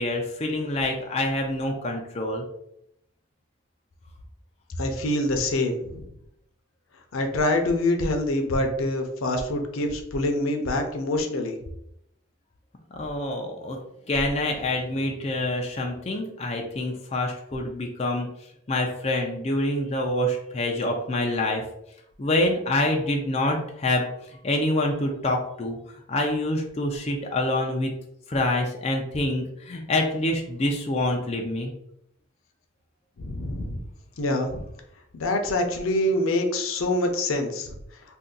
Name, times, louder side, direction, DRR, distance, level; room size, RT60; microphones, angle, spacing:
voice 1, 0.0-2.4 12.9-13.8 14.1-18.3 18.7-21.6 22.2-24.1 24.4-25.8 26.1-27.9 28.3-31.7, left 1 dB, 30° left, 1 dB, 0.4 m, -26 dB
voice 2, 4.8-6.0 7.1-11.6 33.2-33.8 34.2-34.6 35.1-37.7, left 1 dB, 85° left, 5 dB, 0.5 m, -25 dB
2.6 x 2.2 x 3.7 m, 0.76 s
head